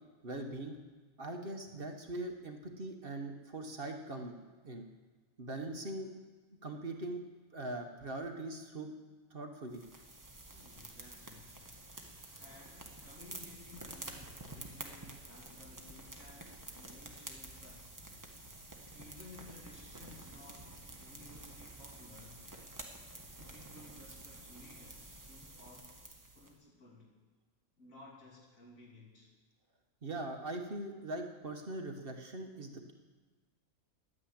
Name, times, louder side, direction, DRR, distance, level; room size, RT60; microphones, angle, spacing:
voice 1, 0.2-0.8 1.2-4.4 4.6-4.9 5.4-6.1 6.6-7.2 7.5-8.9 9.3-9.8 30.0-32.9, right 2 dB, 45° right, 3 dB, 1.3 m, -41 dB
sound 1, 9.7-26.5, right 2 dB, 15° right, 1.1 m, -50 dB
voice 2, 10.5-11.6 12.4-18.0 18.9-22.4 23.5-26.0 26.3-27.1 27.8-29.3, left 2 dB, 65° left, -4 dB, 3.2 m, -57 dB
11.5 x 9.3 x 8.7 m, 1.4 s
omnidirectional pair, 1.5 m